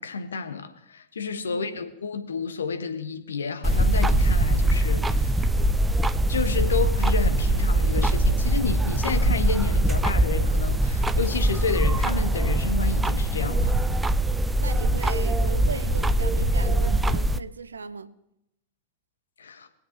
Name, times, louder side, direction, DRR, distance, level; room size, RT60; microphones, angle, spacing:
voice 1, 0.0-5.5 6.3-13.7 19.4-19.7, left 5 dB, 70° left, 1.0 m, -30 dB
sound 1, 3.6-17.4, right 1 dB, 10° right, 0.4 m, -22 dB
voice 2, 14.6-18.1, right 4 dB, 75° right, 0.6 m, -36 dB
22.5 x 8.1 x 2.9 m
figure-of-eight pair, 90°, 0 cm